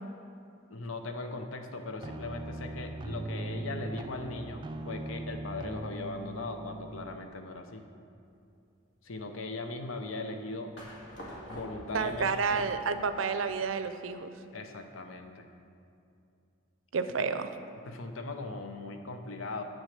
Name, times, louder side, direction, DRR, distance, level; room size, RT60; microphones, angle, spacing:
voice 1, 0.7-7.8 9.0-10.7 11.5-12.6 14.5-15.5 17.2-17.3 17.8-19.6, left 2 dB, 90° left, 6 dB, 0.8 m, -39 dB
sound 1, 2.0-7.2, right 2 dB, 25° right, 0.3 m, -40 dB
sound 2, 10.8-13.8, equal, 75° left, 2.2 m, -46 dB
voice 2, 11.9-14.3 16.9-17.5, right 5 dB, 85° right, 10 dB, 0.5 m, -30 dB
8.8 x 6.3 x 6.6 m, 2.6 s
head